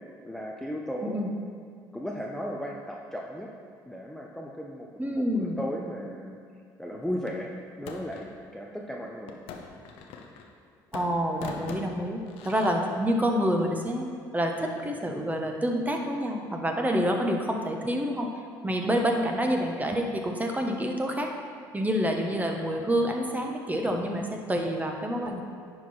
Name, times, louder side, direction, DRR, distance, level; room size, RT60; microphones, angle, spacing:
voice 1, 0.2-1.3 1.9-3.5 3.8-6.4 6.8-9.4, equal, 5° left, -2 dB, 0.8 m, -36 dB
voice 2, 1.0-1.3 5.0-5.6 10.9-14.1 14.3-18.3 18.6-21.3 21.7-25.4, equal, 15° right, 2 dB, 1.3 m, -27 dB
sound 1, 7.3-8.3 9.3-10.6 10.9-12.7, left 5 dB, 75° left, 0.8 m, -42 dB
10.5 x 4.7 x 4.3 m, 2.2 s
hypercardioid pair, 60°, 10 cm